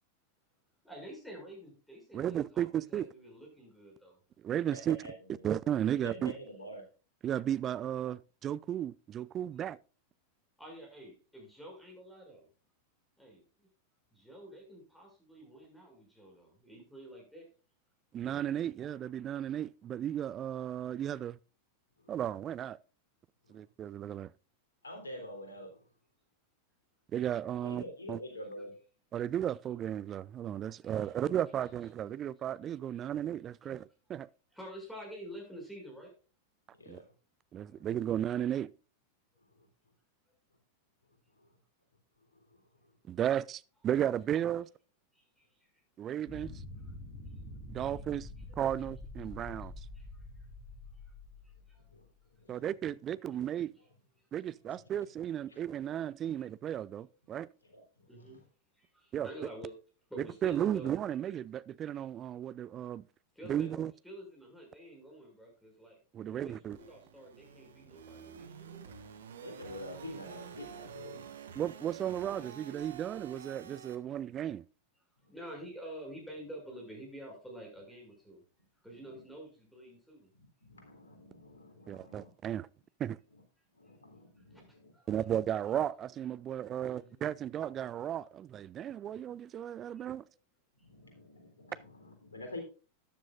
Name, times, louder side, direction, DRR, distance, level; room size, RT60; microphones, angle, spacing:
voice 1, 0.8-4.2 10.6-12.5 13.2-13.7 14.1-17.5 30.8-31.1 33.6-33.8 34.5-36.1 45.1-45.7 48.5-48.6 49.3-49.4 49.9-50.1 50.4-50.5 51.4-51.8 58.1-58.4 58.7-59.7 60.1-61.0 63.3-66.0 66.3-69.0 75.3-78.4 78.8-80.3 83.9-84.0 84.2-84.6 84.9-85.2 86.8-87.2 90.0-90.1, equal, ahead, 6.8 m, -49 dB
voice 2, 2.1-3.1 4.4-5.0 5.4-6.3 7.2-9.8 18.1-21.4 22.1-22.8 23.5-24.3 27.1-28.2 29.1-34.3 36.9-37.0 37.5-38.7 43.1-44.7 46.0-46.5 47.7-48.3 48.6-49.7 52.5-53.7 54.3-57.5 59.1-59.3 60.4-63.0 63.5-63.9 66.1-66.8 71.5-74.6 81.9-82.7 83.0-83.2 85.1-90.3, right 10 dB, 30° right, 0.5 m, -34 dB
voice 3, 4.7-5.5 6.0-6.8 24.8-25.8 27.6-28.7 36.8-37.1 37.7-37.8 39.6-39.7 41.4-41.5 42.5-42.6 51.9-52.1 52.4-52.6 54.7-54.8 55.5-55.6 57.7-57.8 58.2-58.3 69.4-71.4 79.1-79.2 80.4-82.3 83.8-84.9 90.8-92.6, left 1 dB, 75° left, 3.6 m, -47 dB
sound 1, 46.3-52.0, left 2 dB, 30° left, 3.2 m, -46 dB
sound 2, 66.7-74.0, right 8 dB, 65° right, 1.3 m, -49 dB
13.5 x 10.5 x 2.5 m
figure-of-eight pair, 90°, 0 cm